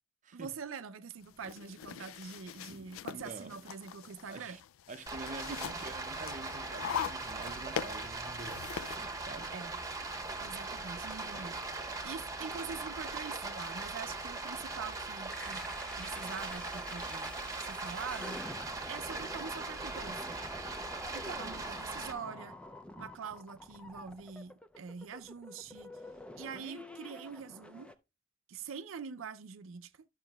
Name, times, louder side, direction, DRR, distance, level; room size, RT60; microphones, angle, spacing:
voice 1, 0.3-4.6 5.5-5.6 9.5-9.8 10.4-11.6 12.0-15.6 16.0-18.4 18.9-20.4 21.1-22.6 23.0-26.0 26.4-27.9 28.5-30.0, right 6 dB, 85° right, 0.5 m, -44 dB
sound 1, 1.2-9.0, left 9 dB, 85° left, 0.3 m, -42 dB
voice 2, 2.7-3.6 4.3-4.6 4.9-9.5, right 3 dB, 40° right, 0.6 m, -47 dB
Stream, 5.1-22.1, right 3 dB, 20° right, 1.1 m, -40 dB
sound 2, 15.3-27.9, left 1 dB, 5° left, 0.4 m, -48 dB
12.0 x 6.2 x 2.3 m
head